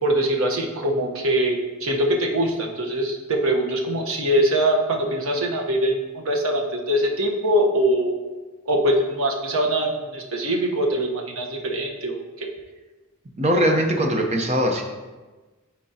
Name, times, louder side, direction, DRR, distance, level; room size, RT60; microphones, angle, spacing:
voice 1, 0.0-8.1 8.7-12.5, right 1 dB, 70° right, 0 dB, 1.1 m, -23 dB
voice 2, 13.4-14.8, equal, 30° right, 2 dB, 0.8 m, -21 dB
12.5 x 4.4 x 2.8 m, 1.2 s
head